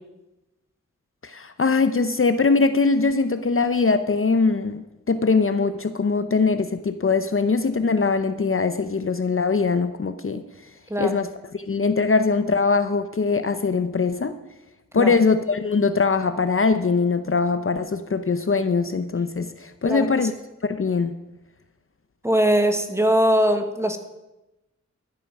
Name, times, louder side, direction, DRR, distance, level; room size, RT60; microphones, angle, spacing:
voice 1, 1.2-10.4 11.0-11.3 11.5-14.4 14.9-20.3 20.6-21.1, left 4 dB, 45° left, 10 dB, 0.7 m, -22 dB
voice 2, 10.9-11.2 14.9-15.1 19.8-20.1 22.2-24.0, equal, 10° right, 7 dB, 1.4 m, -21 dB
13.5 x 8.8 x 6.0 m, 1.0 s
wide cardioid pair, 70°, 30 cm